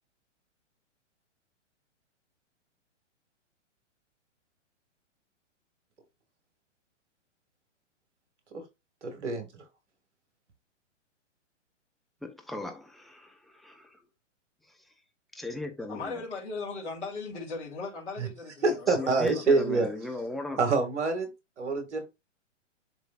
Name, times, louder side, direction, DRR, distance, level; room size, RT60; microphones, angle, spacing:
voice 1, 9.0-9.6 18.2-18.3 18.6-19.9 20.6-21.3 21.6-22.0, right 3 dB, 70° right, 2.6 m, -26 dB
voice 2, 12.2-14.0 15.3-16.2 18.9-20.6, left 2 dB, ahead, 0.9 m, -38 dB
voice 3, 15.9-19.1 19.3-19.4, left 4 dB, 65° left, 3.1 m, -38 dB
11.0 x 3.7 x 2.6 m
hypercardioid pair, 125°, 37 cm